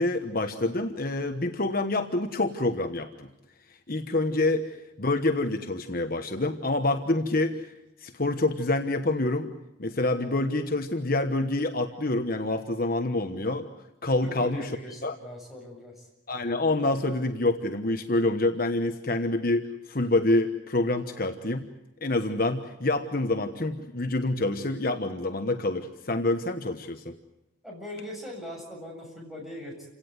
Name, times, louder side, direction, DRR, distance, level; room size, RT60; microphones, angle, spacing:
voice 1, 0.0-3.3 3.7-7.7 8.0-9.5 9.8-13.7 14.0-14.7 15.0-15.2 16.3-21.6 22.0-27.1, left 2 dB, 45° left, 6 dB, 1.2 m, -27 dB
voice 2, 14.2-16.1 27.6-29.9, left 1 dB, ahead, -1 dB, 7.6 m, -40 dB
28.5 x 17.5 x 9.6 m, 0.90 s
head